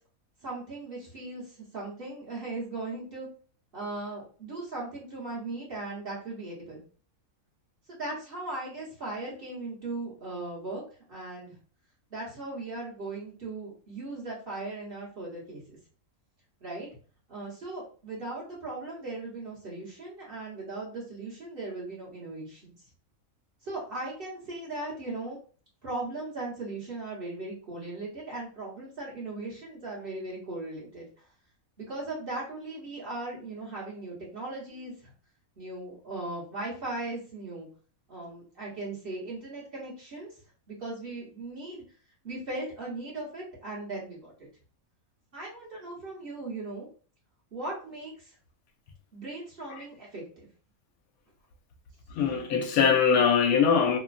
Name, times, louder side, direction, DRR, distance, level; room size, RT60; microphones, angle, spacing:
voice 1, 0.4-3.3 3.7-6.8 7.9-10.8 11.1-11.6 12.1-15.8 16.6-16.9 17.3-22.8 23.6-25.4 25.8-31.3 31.8-35.1 35.6-37.7 38.1-40.3 40.7-41.8 42.2-44.3 45.3-46.9 47.5-48.4 49.1-50.5, right 2 dB, 45° right, 1.2 m, -38 dB
voice 2, 52.1-54.0, left 6 dB, 80° left, 1.0 m, -22 dB
3.0 x 2.2 x 2.5 m
omnidirectional pair, 1.5 m